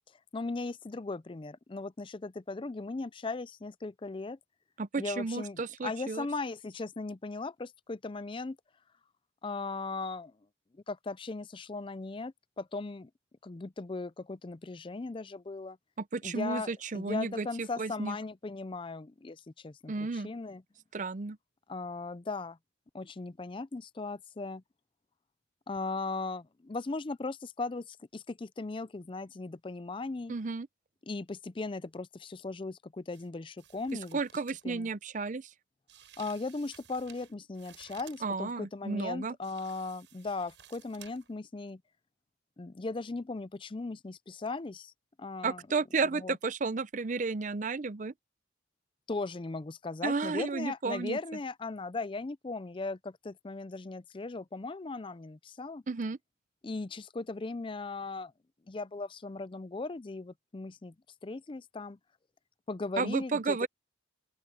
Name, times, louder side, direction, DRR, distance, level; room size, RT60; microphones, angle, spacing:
voice 1, 0.3-4.4 4.9-8.6 9.4-10.3 10.9-13.1 13.4-15.8 16.2-20.6 21.7-22.6 22.9-24.6 25.7-30.3 31.1-34.2 34.6-34.9 36.2-41.8 42.6-44.9 45.2-45.6 46.1-46.4 49.1-55.8 56.6-58.3 58.7-60.9 61.2-62.0 62.7-63.6, left 3 dB, 25° left, 0.4 m, -38 dB
voice 2, 4.8-6.3 16.0-18.2 19.9-20.3 20.9-21.4 30.3-30.7 34.1-35.5 38.2-39.3 45.4-48.1 50.0-51.2 55.9-56.2 63.0-63.7, right 4 dB, 40° right, 0.5 m, -33 dB
sound 1, 33.1-33.3 33.6-34.6 35.9-38.3 39.4-41.4 41.7-41.8, right 10 dB, 70° right, 7.4 m, -56 dB
open air
head